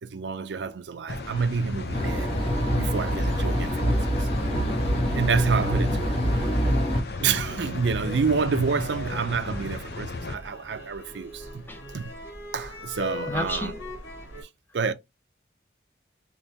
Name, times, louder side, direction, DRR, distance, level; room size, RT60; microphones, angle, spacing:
voice 1, 0.0-2.3 2.7-4.3 5.1-6.2 7.2-12.1 12.5-13.7 14.4-14.9, right 5 dB, 75° right, 0.5 m, -28 dB
sound 1, 1.1-10.4, left 2 dB, 60° left, 0.6 m, -35 dB
sound 2, 1.7-14.4, left 2 dB, 90° left, 2.0 m, -42 dB
sound 3, 1.9-7.0, equal, 30° left, 0.9 m, -25 dB
voice 2, 13.3-13.8, left 1 dB, 10° left, 0.6 m, -31 dB
3.6 x 2.9 x 2.7 m
head